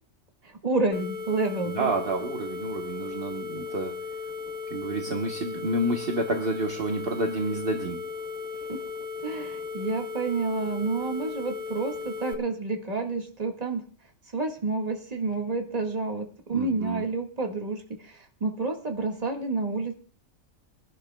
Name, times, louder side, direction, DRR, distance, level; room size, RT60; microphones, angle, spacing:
voice 1, 0.6-1.9 8.7-8.8 9.2-13.8 14.3-19.9, right 3 dB, 30° right, 2 dB, 1.7 m, -29 dB
sound 1, 0.9-12.3, left 5 dB, 80° left, 1.9 m, -36 dB
voice 2, 1.7-3.9 4.7-8.0 16.5-17.1, right 2 dB, 45° right, 2 dB, 1.3 m, -29 dB
24.0 x 11.5 x 2.3 m, 0.41 s
omnidirectional pair, 1.4 m